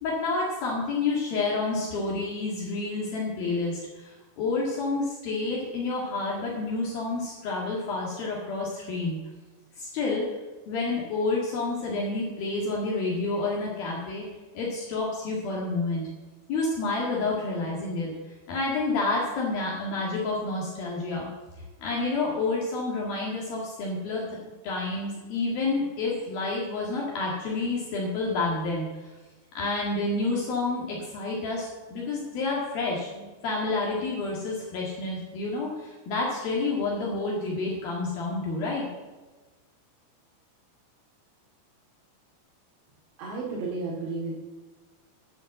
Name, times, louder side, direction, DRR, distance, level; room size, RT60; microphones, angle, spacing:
voice 1, 0.0-9.2 9.8-10.3 10.7-14.3 14.5-16.1 16.5-18.1 18.5-21.3 21.8-24.2 24.6-29.1 29.6-38.9, left 3 dB, 65° left, -4 dB, 3.7 m, -29 dB
voice 2, 43.2-44.4, right 3 dB, 85° right, -5 dB, 4.6 m, -32 dB
10.5 x 8.9 x 7.9 m, 1.2 s
omnidirectional pair, 4.8 m